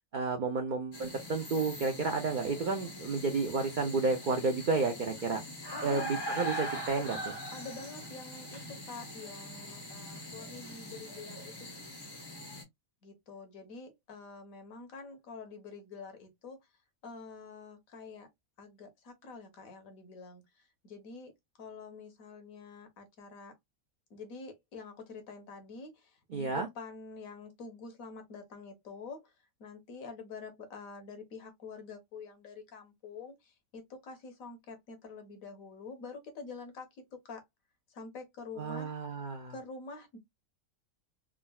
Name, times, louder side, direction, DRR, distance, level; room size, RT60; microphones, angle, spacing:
voice 1, 0.1-5.4 5.8-7.3 26.3-26.7 38.6-39.5, right 4 dB, 65° right, 0.4 m, -31 dB
sound 1, 0.9-12.6, equal, 30° left, 0.4 m, -42 dB
voice 2, 5.7-6.1 7.5-12.0 13.0-16.6 17.0-18.3 18.6-21.3 21.6-23.5 24.1-29.3 29.6-37.4 37.9-38.9 39.5-40.2, left 4 dB, 75° left, 1.3 m, -47 dB
3.6 x 2.1 x 2.2 m
omnidirectional pair, 1.5 m